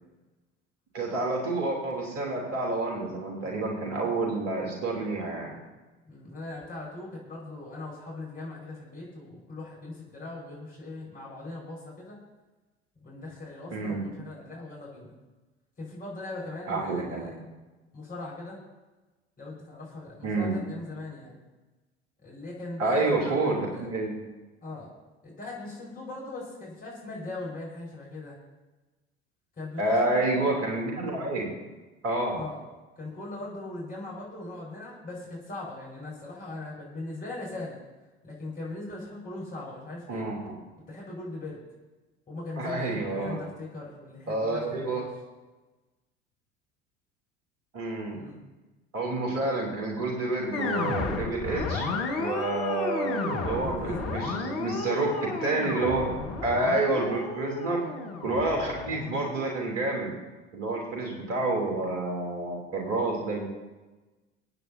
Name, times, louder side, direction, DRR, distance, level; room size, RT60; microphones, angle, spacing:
voice 1, 0.9-5.5 13.7-14.1 16.7-17.4 20.2-20.6 22.8-24.2 29.8-31.5 32.0-32.4 40.1-40.6 42.6-43.4 44.3-45.0 47.7-48.2 48.9-51.9 52.2-55.1 55.4-56.1 56.4-57.8 58.2-60.1 60.5-63.4, right 2 dB, 50° right, 0 dB, 3.2 m, -29 dB
voice 2, 6.1-12.2 13.0-15.1 15.8-17.3 17.9-18.6 19.4-21.3 22.2-23.9 24.6-24.9 25.2-28.4 29.6-30.6 32.3-32.6 33.0-37.8 38.2-40.3 40.9-41.6 42.3-45.0 48.1-48.4 53.5-54.1, left 2 dB, 25° left, -5 dB, 5.2 m, -40 dB
sound 1, 50.5-59.8, left 3 dB, 45° left, 1.9 m, -33 dB
25.5 x 9.1 x 2.8 m, 1.2 s
figure-of-eight pair, 65°, 32 cm